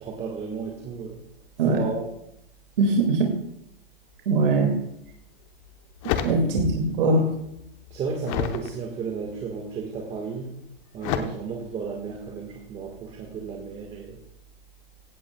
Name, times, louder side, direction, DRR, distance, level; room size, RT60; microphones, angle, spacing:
voice 1, 0.0-1.2 1.6-2.1 6.2-6.6 7.9-10.5 10.9-14.2, right 5 dB, 20° right, 1 dB, 1.5 m, -33 dB
voice 2, 2.8-3.3 4.3-4.8 6.0-7.3, right 3 dB, 65° right, 2 dB, 2.3 m, -21 dB
sound 1, 5.1-5.2 5.7-7.0 7.3-8.7 9.3-9.7 11.0-11.2, left 10 dB, 35° left, 0.9 m, -30 dB
16.5 x 14.5 x 2.3 m, 0.77 s
hypercardioid pair, 145°, 30 cm